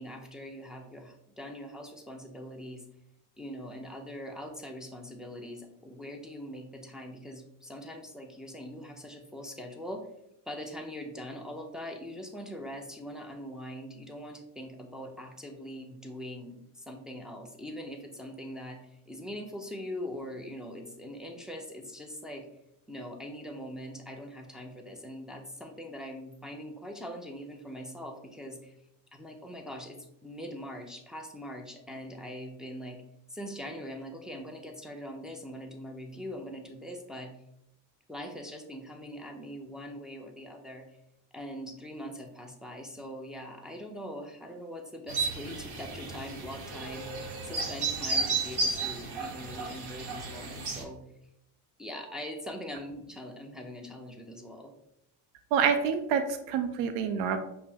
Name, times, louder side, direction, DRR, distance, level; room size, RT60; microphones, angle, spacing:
voice 1, 0.0-2.8 3.4-10.1 10.5-18.8 19.1-22.5 22.9-28.7 29.1-33.0 33.3-37.3 38.1-40.9 41.3-51.0 51.8-54.7, equal, ahead, 1 dB, 0.4 m, -42 dB
sound 1, 45.1-50.8, right 3 dB, 50° right, 1.0 m, -33 dB
voice 2, 55.5-57.4, right 7 dB, 85° right, 8 dB, 0.5 m, -27 dB
5.2 x 2.1 x 2.8 m, 0.81 s
supercardioid pair, 85°, 48 cm